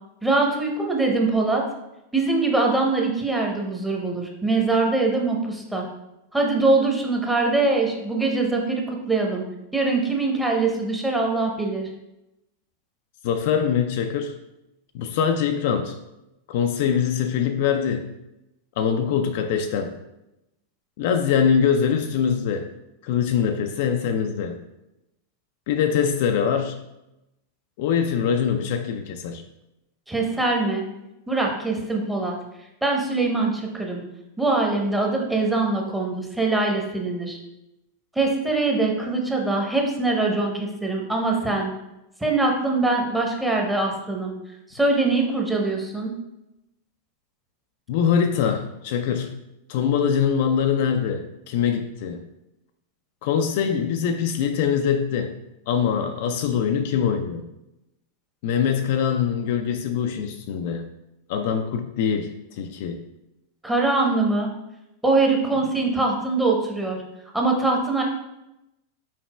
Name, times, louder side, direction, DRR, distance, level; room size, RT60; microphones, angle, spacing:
voice 1, 0.2-1.6 2.1-5.9 6.3-9.4 9.7-11.9 30.1-30.8 31.3-32.4 32.8-34.0 34.4-37.4 38.1-41.7 42.2-44.3 44.7-46.1 63.6-64.5 65.0-67.0 67.3-68.0, right 3 dB, 5° right, 0 dB, 0.9 m, -23 dB
voice 2, 13.2-14.3 14.9-16.0 16.5-18.1 18.8-20.0 21.0-22.7 23.0-24.6 25.7-26.8 27.8-29.4 47.9-49.4 49.7-52.2 53.2-55.3 55.7-57.5 58.4-60.9 61.3-63.0 65.5-65.6, left 7 dB, 50° left, 6 dB, 0.3 m, -23 dB
5.7 x 4.1 x 2.3 m, 0.91 s
figure-of-eight pair, 90°, 0 cm